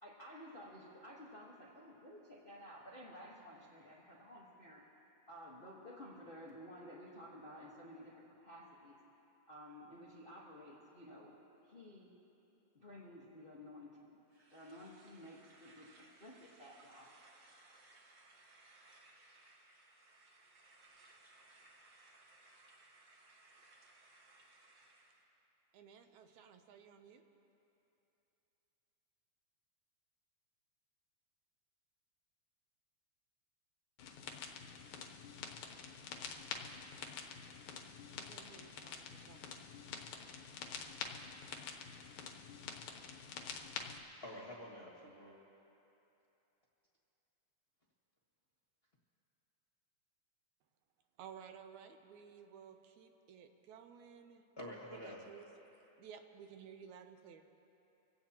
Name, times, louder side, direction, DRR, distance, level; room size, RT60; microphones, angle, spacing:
voice 1, 0.0-4.8 5.3-9.0 9.5-12.1 12.7-14.2 14.5-17.2, equal, 75° left, -5 dB, 0.5 m, -54 dB
sound 1, 14.3-25.2, right 2 dB, 45° right, 1.9 m, -64 dB
voice 2, 25.7-27.3 38.1-39.7 51.2-54.4 54.9-55.5 55.8-57.4, right 7 dB, 75° right, 7 dB, 2.0 m, -56 dB
sound 2, 34.0-44.0, left 6 dB, 90° left, 2.4 m, -47 dB
voice 3, 44.2-45.4 54.6-55.2, equal, 30° left, -4 dB, 1.3 m, -48 dB
25.0 x 16.5 x 2.9 m, 2.9 s
omnidirectional pair, 3.5 m